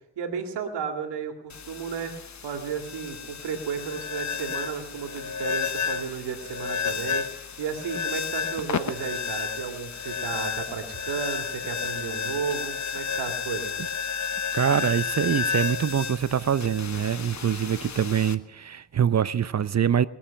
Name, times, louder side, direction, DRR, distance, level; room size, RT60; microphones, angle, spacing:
voice 1, 0.2-13.7, right 6 dB, 85° right, 2.3 m, -33 dB
sound 1, 1.5-18.3, left 6 dB, 45° left, 1.1 m, -32 dB
voice 2, 14.5-20.0, right 8 dB, 40° right, 0.7 m, -24 dB
21.0 x 7.2 x 8.8 m
cardioid pair, 60°, 40 cm